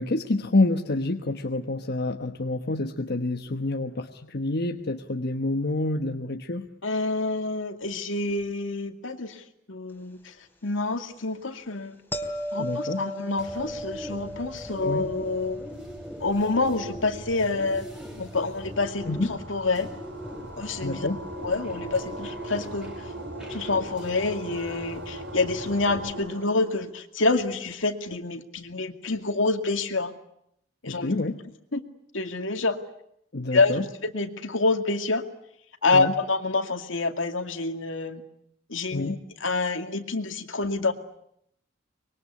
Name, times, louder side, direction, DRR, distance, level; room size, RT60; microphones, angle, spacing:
voice 1, 0.0-6.7 12.6-13.0 14.8-15.1 19.1-19.3 20.8-21.2 30.9-31.4 33.3-33.8 35.9-36.1 38.9-39.2, left 2 dB, 55° left, 5 dB, 1.2 m, -27 dB
voice 2, 6.8-9.4 9.7-10.3 10.6-12.0 12.5-15.6 16.2-17.9 18.2-19.9 20.6-21.1 21.4-23.1 23.5-30.1 30.8-31.1 31.7-31.8 32.1-32.8 33.5-35.2 35.8-38.2 38.7-39.1 39.4-40.9, left 3 dB, 75° left, 7 dB, 2.3 m, -27 dB
sound 1, 12.1-19.1 24.4-24.5, equal, 10° left, 3.2 m, -38 dB
Bird, 13.4-26.1, equal, 5° right, 5.8 m, -41 dB
sound 2, 18.5-26.9, right 1 dB, 80° right, 7.8 m, -40 dB
25.0 x 22.5 x 9.7 m, 0.74 s
head